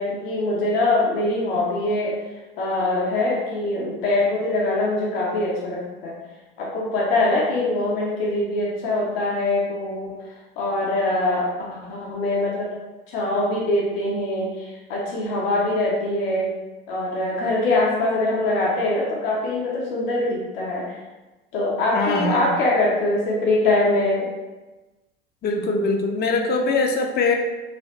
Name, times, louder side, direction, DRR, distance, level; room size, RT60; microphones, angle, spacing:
voice 1, 0.0-2.2 2.6-6.2 6.6-10.1 10.6-12.7 13.1-16.5 16.9-21.0 21.5-24.3, left 2 dB, 65° left, -4 dB, 0.8 m, -23 dB
voice 2, 21.9-22.5 25.4-27.4, left 3 dB, 30° left, 3 dB, 0.5 m, -22 dB
3.0 x 2.8 x 3.0 m, 1.1 s
figure-of-eight pair, 70°, 31 cm